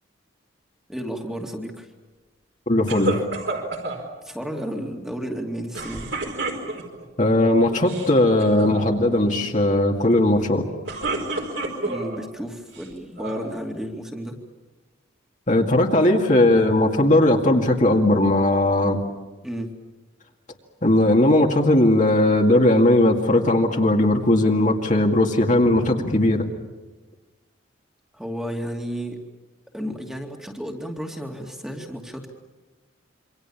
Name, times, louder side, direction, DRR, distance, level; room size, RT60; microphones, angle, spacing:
voice 1, 0.9-1.9 4.2-6.1 11.8-14.4 19.4-19.7 28.1-29.2 29.7-32.3, equal, 5° right, 2 dB, 2.4 m, -32 dB
voice 2, 2.7-3.2 7.2-10.7 15.5-19.0 20.8-26.5, left 1 dB, 40° left, 2 dB, 2.1 m, -18 dB
sound 1, 2.9-4.0 5.7-7.0 7.7-8.1 8.4-8.8 10.6-12.2 12.7-13.5, right 2 dB, 60° right, 4.6 m, -29 dB
27.5 x 25.0 x 7.2 m, 1.2 s
head